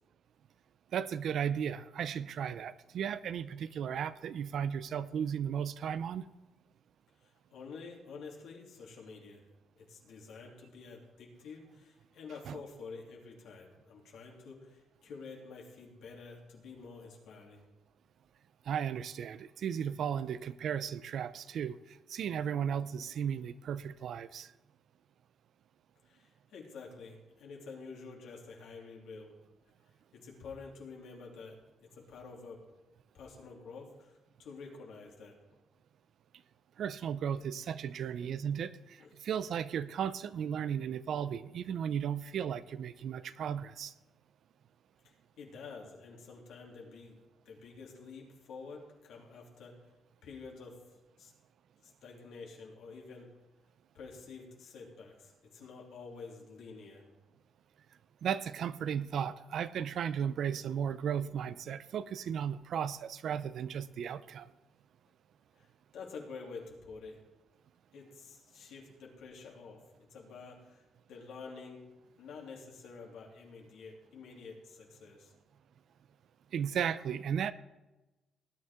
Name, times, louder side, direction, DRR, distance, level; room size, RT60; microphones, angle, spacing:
voice 1, 0.9-6.3 12.5-12.6 18.6-24.5 36.8-43.9 58.2-64.5 76.5-77.5, right 8 dB, 65° right, 15 dB, 0.5 m, -35 dB
voice 2, 7.2-9.4 9.7-17.6 26.0-29.3 30.1-32.6 33.1-35.4 39.0-39.1 45.0-47.2 47.4-49.7 50.2-50.8 51.2-51.3 51.8-53.3 53.9-57.0 65.5-67.2 67.9-69.8 70.1-71.8 72.2-75.3, left 4 dB, 80° left, -1 dB, 3.0 m, -49 dB
18.5 x 9.6 x 3.7 m, 1.1 s
cardioid pair, 105°, 0 cm